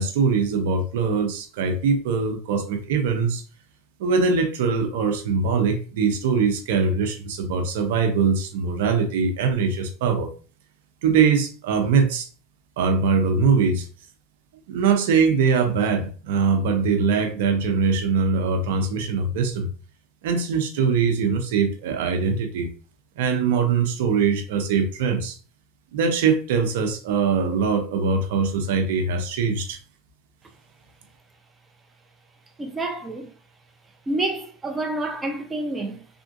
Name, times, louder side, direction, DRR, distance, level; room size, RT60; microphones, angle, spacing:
voice 1, 0.0-3.4 4.0-10.3 11.0-12.3 12.8-13.9 14.7-19.7 20.2-22.7 23.2-25.4 25.9-29.8, right 5 dB, 75° right, 0.6 m, -22 dB
voice 2, 32.6-33.3 34.1-36.1, right 2 dB, 20° right, 0.6 m, -28 dB
3.5 x 2.5 x 2.5 m
hypercardioid pair, 100°, 0 cm